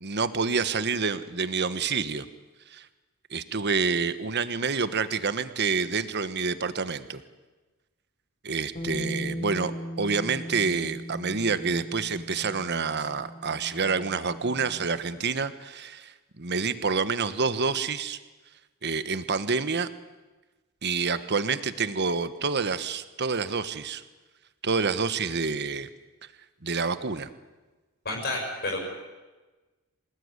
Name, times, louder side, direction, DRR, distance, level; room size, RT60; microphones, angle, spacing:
voice 1, 0.0-2.2 2.7-2.9 3.3-7.2 8.4-9.7 10.0-18.2 18.8-19.9 20.8-24.0 24.6-25.9 26.6-27.3, right 5 dB, 50° right, 12 dB, 1.3 m, -28 dB
Bass guitar, 8.7-15.0, equal, 30° left, 3.6 m, -38 dB
voice 2, 28.0-28.8, left 2 dB, 45° left, 0 dB, 6.2 m, -30 dB
27.0 x 19.0 x 9.7 m, 1.2 s
head